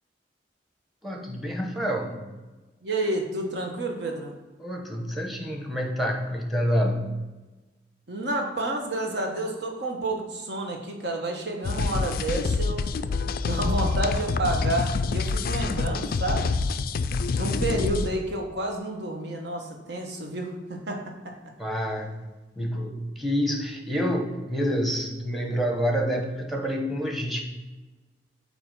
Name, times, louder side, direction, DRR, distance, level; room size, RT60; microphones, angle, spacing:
voice 1, 1.0-2.3 4.6-7.1 21.6-22.2 22.6-27.5, equal, ahead, 2 dB, 1.0 m, -28 dB
voice 2, 2.8-4.4 8.1-12.9 13.4-16.5 17.3-21.0, right 2 dB, 70° right, 1 dB, 1.3 m, -30 dB
sound 1, 11.6-18.1, left 4 dB, 55° left, 0.3 m, -26 dB
8.5 x 2.9 x 5.9 m, 1.2 s
head